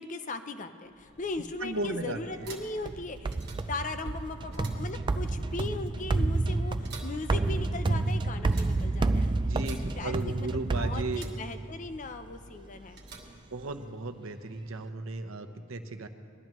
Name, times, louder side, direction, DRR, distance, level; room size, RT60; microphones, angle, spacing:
voice 1, 0.0-3.4 3.7-9.5 10.0-13.0, left 3 dB, 40° left, 8 dB, 0.6 m, -38 dB
sound 1, 0.8-14.1, right 2 dB, 55° right, 1.4 m, -51 dB
voice 2, 1.6-2.5 9.4-11.2 13.5-16.1, right 2 dB, 85° right, 7 dB, 0.8 m, -36 dB
sound 2, 2.8-11.6, right 2 dB, 25° right, 0.3 m, -29 dB
20.5 x 12.0 x 3.1 m, 2.4 s
head